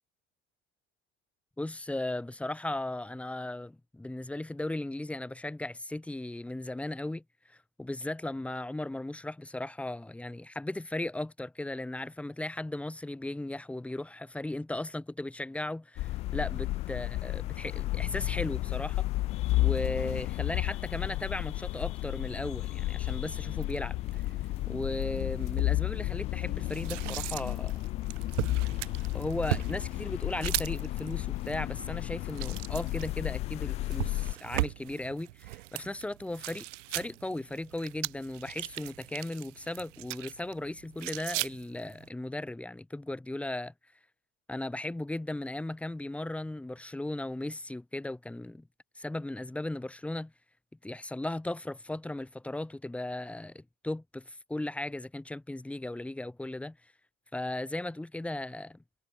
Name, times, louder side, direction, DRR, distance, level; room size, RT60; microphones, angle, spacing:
voice 1, 1.6-7.2 7.5-19.1 19.6-24.0 24.7-27.7 29.1-36.7 36.9-43.7 44.5-48.7 49.0-50.3 50.8-56.8 57.3-58.8, left 1 dB, 5° left, 2.7 m, -36 dB
sound 1, 16.0-34.3, left 18 dB, 20° left, 0.3 m, -32 dB
sound 2, 23.0-42.1, right 20 dB, 75° right, 2.3 m, -39 dB
supercardioid pair, 170°, 37 cm